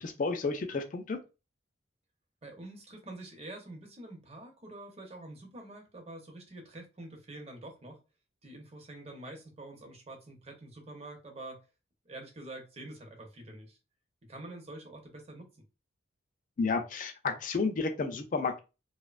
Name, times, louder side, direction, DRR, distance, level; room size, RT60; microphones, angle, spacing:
voice 1, 0.0-1.2 16.6-18.6, left 4 dB, 40° left, 7 dB, 0.3 m, -31 dB
voice 2, 2.4-8.0 8.4-11.6 12.1-13.8 14.3-15.6, right 2 dB, 30° right, 3 dB, 0.6 m, -46 dB
2.7 x 2.1 x 2.3 m, 0.29 s
head